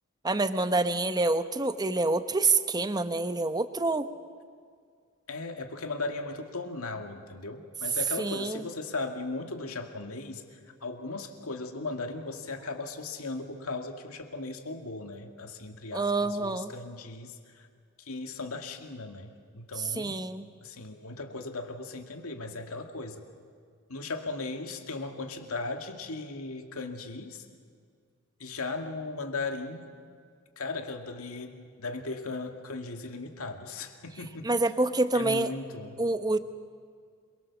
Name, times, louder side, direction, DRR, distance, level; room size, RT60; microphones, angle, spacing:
voice 1, 0.2-4.1 8.2-8.6 15.9-16.7 20.0-20.4 34.4-35.5 36.0-36.4, right 2 dB, 20° right, 11 dB, 0.9 m, -27 dB
voice 2, 5.3-17.7 18.0-20.2 20.6-23.2 23.9-27.5 28.4-29.9 30.6-34.5 35.1-36.0, left 3 dB, 75° left, 5 dB, 2.2 m, -37 dB
27.5 x 23.0 x 7.2 m, 2.1 s
head